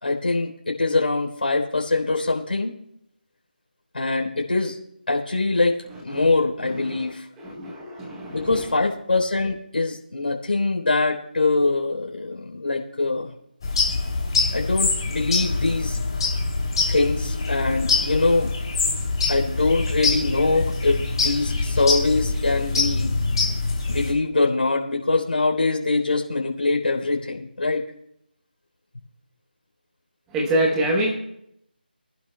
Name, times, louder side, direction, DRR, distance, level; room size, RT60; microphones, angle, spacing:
voice 1, 0.0-2.7 3.9-4.8 5.1-5.8 6.0-7.3 8.3-13.3 14.5-16.0 16.9-18.5 19.3-23.2 23.9-27.8, left 3 dB, 70° left, 1 dB, 3.5 m, -23 dB
voice 2, 6.6-7.1 7.4-8.7 30.3-31.1, right 1 dB, 5° right, -1 dB, 1.0 m, -26 dB
sound 1, 13.6-24.1, left 3 dB, 30° left, 2.6 m, -24 dB
26.0 x 11.5 x 2.2 m, 0.77 s
figure-of-eight pair, 175°, 6 cm